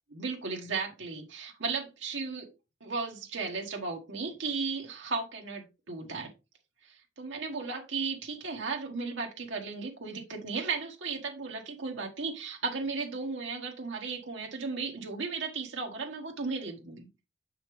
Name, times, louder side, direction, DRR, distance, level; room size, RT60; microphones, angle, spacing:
voice 1, 0.1-2.5 2.8-6.3 6.8-17.1, right 4 dB, 80° right, 1.4 m, -35 dB
6.9 x 5.6 x 3.2 m
head